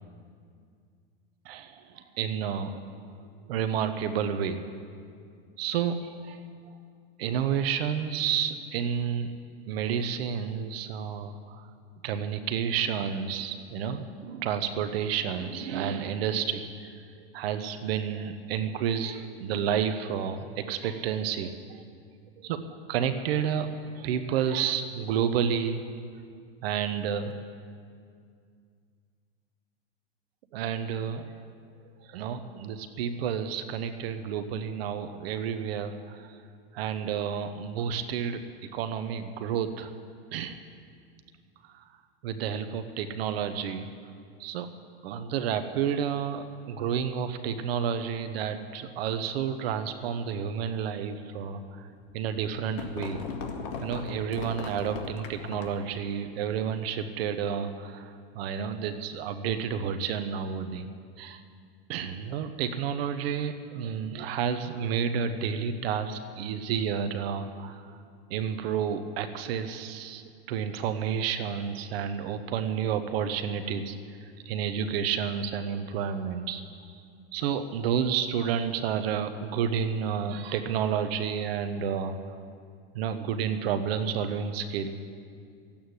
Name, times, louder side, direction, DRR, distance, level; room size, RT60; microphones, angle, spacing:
voice 1, 1.4-2.8 3.5-4.6 5.6-6.4 7.2-9.3 9.7-11.6 12.0-17.0 17.3-21.8 22.4-22.6 22.9-23.7 24.0-25.8 26.6-27.3 30.5-31.4 32.1-36.4 36.7-39.9 40.3-40.6 42.2-43.9 44.4-44.7 45.0-51.9 52.1-53.2 53.8-60.9 61.2-61.4 61.9-67.8 68.3-70.2 70.5-74.0 74.4-76.6 77.3-82.2 82.9-84.9, right 7 dB, 70° right, 9 dB, 1.1 m, -30 dB
sound 1, 52.1-55.9, left 5 dB, 55° left, 2.1 m, -38 dB
15.0 x 8.7 x 9.6 m, 2.2 s
supercardioid pair, 120°, 31 cm